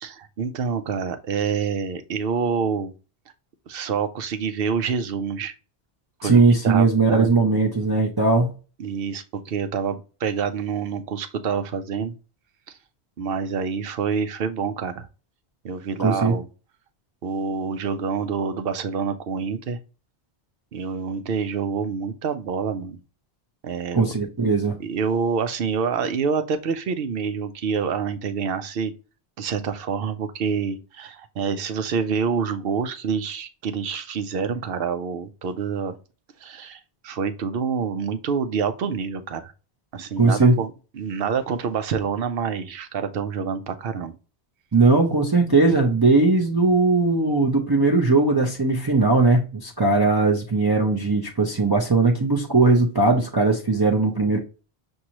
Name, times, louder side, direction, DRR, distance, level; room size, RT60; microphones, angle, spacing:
voice 1, 0.0-2.9 3.7-5.5 6.2-6.4 6.6-7.3 8.8-12.1 12.7-12.8 13.2-15.1 15.6-16.4 17.2-19.8 20.7-23.0 23.6-24.1 24.8-28.9 29.4-36.0 36.4-39.5 39.9-40.7 40.9-44.2, right 6 dB, 65° right, 0.8 m, -27 dB
voice 2, 6.2-8.5 16.0-16.3 23.9-24.8 40.2-40.6 44.7-54.4, right 3 dB, 30° right, 0.5 m, -19 dB
6.1 x 2.6 x 2.9 m
omnidirectional pair, 1.1 m